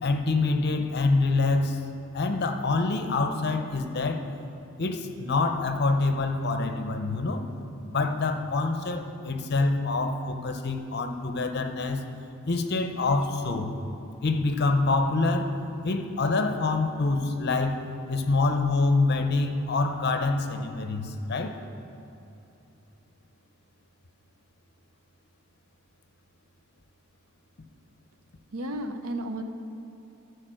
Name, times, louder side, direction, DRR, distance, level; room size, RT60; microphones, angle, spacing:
voice 1, 0.0-1.8 2.1-4.3 4.8-7.4 7.9-12.0 12.5-13.7 14.2-15.5 15.8-17.8 18.1-21.6, left 3 dB, 50° left, 6 dB, 0.7 m, -26 dB
voice 2, 28.5-29.4, right 1 dB, 80° right, 7 dB, 0.7 m, -33 dB
13.5 x 4.8 x 6.2 m, 2.9 s
head